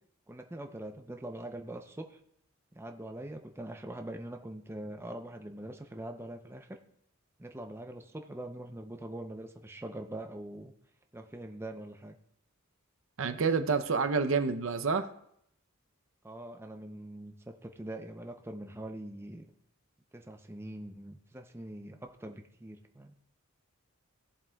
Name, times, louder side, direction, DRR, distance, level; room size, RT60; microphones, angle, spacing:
voice 1, 0.3-2.2 2.7-6.8 7.4-10.7 11.1-12.2 16.2-19.4 20.1-23.1, right 1 dB, 10° right, 5 dB, 0.5 m, -43 dB
voice 2, 13.2-15.1, right 5 dB, 65° right, 10 dB, 0.6 m, -28 dB
16.5 x 7.3 x 2.3 m, 0.72 s
head